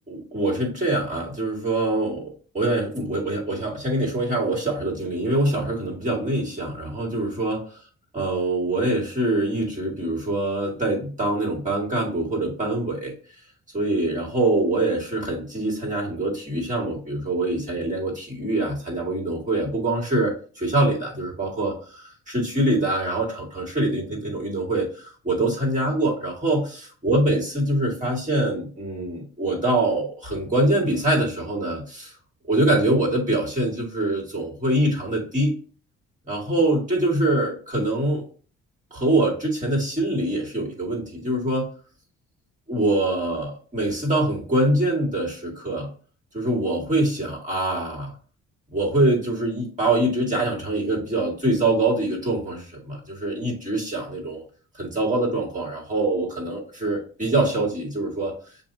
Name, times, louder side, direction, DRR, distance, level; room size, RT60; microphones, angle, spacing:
voice 1, 0.1-7.6 8.1-13.1 13.7-24.9 25.2-32.1 32.5-35.6 36.3-38.3 38.9-41.7 42.7-45.9 46.3-48.1 48.7-54.4 54.7-58.3, right 1 dB, 25° right, -3 dB, 2.0 m, -24 dB
6.8 x 2.7 x 2.7 m, 0.41 s
cardioid pair, 90°, 30 cm